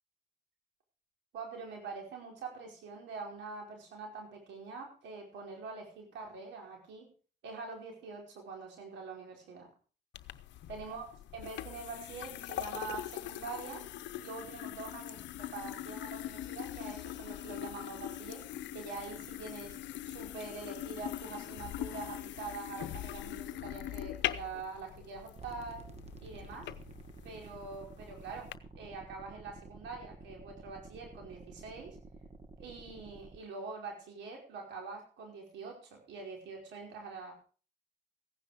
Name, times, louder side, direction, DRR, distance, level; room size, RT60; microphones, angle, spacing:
voice 1, 1.3-7.1 7.4-9.7 10.7-13.8 14.2-15.2 15.5-18.4 18.7-19.8 20.0-25.8 26.2-26.7 27.2-28.5 28.8-32.0 32.6-37.3, right 4 dB, 85° right, 1 dB, 5.0 m, -44 dB
sound 1, 10.1-28.5, left 13 dB, 85° left, 0.7 m, -42 dB
sound 2, 25.4-33.4, right 3 dB, 35° right, 2.1 m, -51 dB
15.5 x 9.9 x 5.1 m, 0.40 s
supercardioid pair, 55°, 18 cm